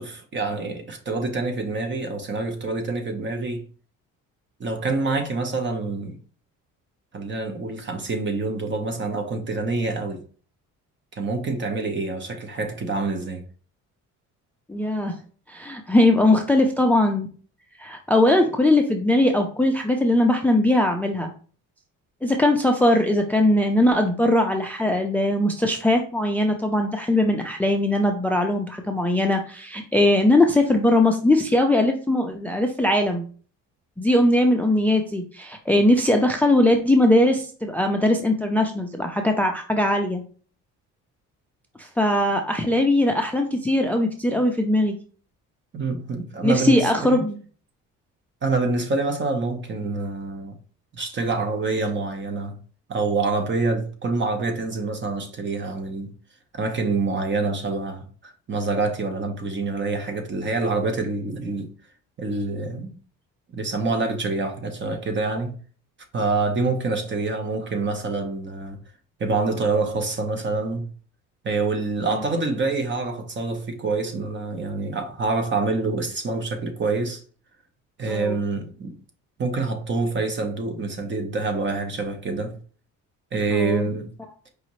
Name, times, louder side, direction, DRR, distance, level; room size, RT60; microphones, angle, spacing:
voice 1, 0.0-3.7 4.6-6.2 7.1-10.2 11.2-13.4 45.7-47.2 48.4-50.6 50.9-52.6 52.9-56.1 56.5-61.7 62.2-63.0 63.5-65.5 66.1-68.8 69.2-70.9 71.4-77.2 78.0-79.0 79.4-82.6 83.3-84.1, right 3 dB, 35° right, 0.9 m, -26 dB
voice 2, 14.7-15.1 15.5-17.3 17.8-21.3 22.2-33.3 34.0-40.2 41.8-45.0 46.4-47.4 78.1-78.4 83.5-83.9, left 1 dB, 5° left, 0.4 m, -20 dB
4.9 x 2.7 x 3.1 m
cardioid pair, 110°, 32 cm